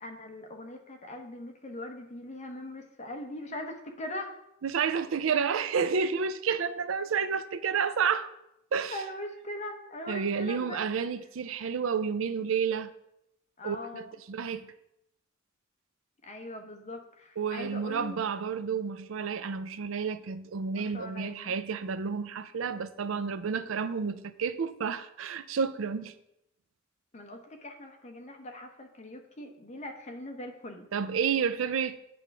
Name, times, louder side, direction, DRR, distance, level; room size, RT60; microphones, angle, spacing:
voice 1, 0.0-4.4 8.9-10.9 13.6-14.1 16.2-18.2 20.7-21.5 27.1-30.9, left 1 dB, 35° left, 0.9 m, -41 dB
voice 2, 4.6-8.3 8.7-9.0 10.1-12.9 13.6-14.7 17.4-26.1 30.9-32.0, right 6 dB, 80° right, 0.5 m, -30 dB
8.6 x 3.4 x 5.9 m
head